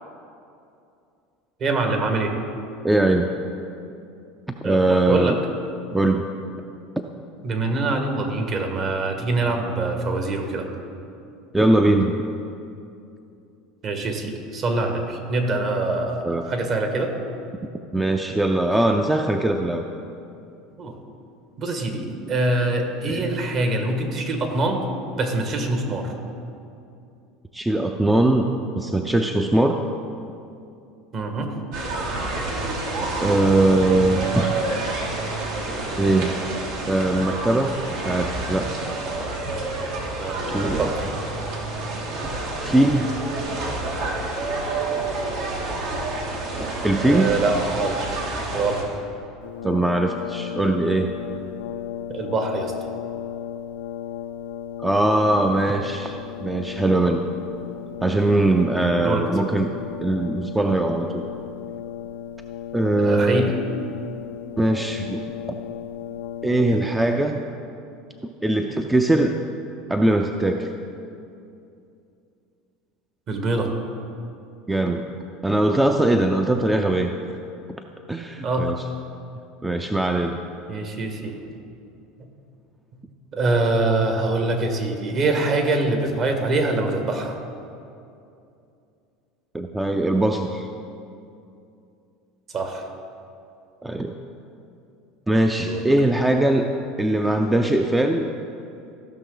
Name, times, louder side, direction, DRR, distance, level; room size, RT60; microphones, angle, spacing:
voice 1, 1.6-2.3 4.6-5.4 5.9-6.0 7.4-10.7 13.8-17.1 20.8-20.9 21.6-24.8 25.2-26.1 31.1-31.5 40.2-40.4 40.8-41.1 47.0-48.0 48.5-48.9 52.1-52.9 58.7-59.3 62.9-63.5 63.9-64.0 73.3-73.7 78.4-78.7 80.7-81.5 83.3-87.4 92.5-92.8 95.6-95.8, right 2 dB, 45° right, 4 dB, 1.6 m, -24 dB
voice 2, 2.8-3.3 4.6-5.3 5.9-6.3 11.5-12.1 16.2-16.4 17.9-19.9 23.1-23.2 27.5-29.8 33.2-34.4 36.0-36.3 36.9-37.8 38.0-38.7 40.5-40.9 42.6-43.1 46.6-47.3 49.6-51.1 54.8-57.3 58.0-59.7 60.0-61.2 62.7-63.5 64.6-65.2 66.4-67.4 68.2-69.3 69.9-70.7 74.7-75.1 75.4-77.1 78.1-78.8 79.6-80.4 89.5-90.7 93.8-94.2 95.3-96.7 97.0-98.3, right 1 dB, 10° right, 4 dB, 0.5 m, -21 dB
sound 1, 31.7-48.8, right 2 dB, 70° right, 1.9 m, -28 dB
Brass instrument, 49.4-67.2, left 10 dB, 90° left, 0.5 m, -35 dB
15.0 x 6.1 x 3.9 m, 2.6 s
supercardioid pair, 100°, 0 cm